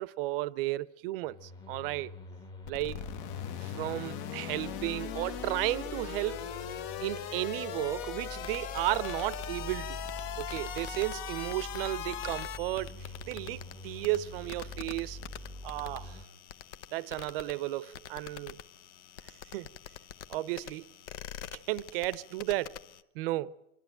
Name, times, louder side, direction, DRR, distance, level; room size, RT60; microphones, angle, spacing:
voice 1, 0.0-2.1 2.7-3.1 3.6-6.5 7.0-10.0 10.4-15.2 15.6-16.2 16.9-18.6 19.5-19.7 20.3-20.9 21.7-22.8 23.1-23.5, right 17 dB, 50° right, 0.7 m, -34 dB
sound 1, 1.2-16.2, left 1 dB, 10° left, 1.1 m, -45 dB
sound 2, 2.6-12.6, left 10 dB, 45° left, 1.0 m, -40 dB
sound 3, 8.4-23.0, left 9 dB, 75° left, 1.0 m, -47 dB
26.0 x 12.5 x 9.0 m
supercardioid pair, 145°, 36 cm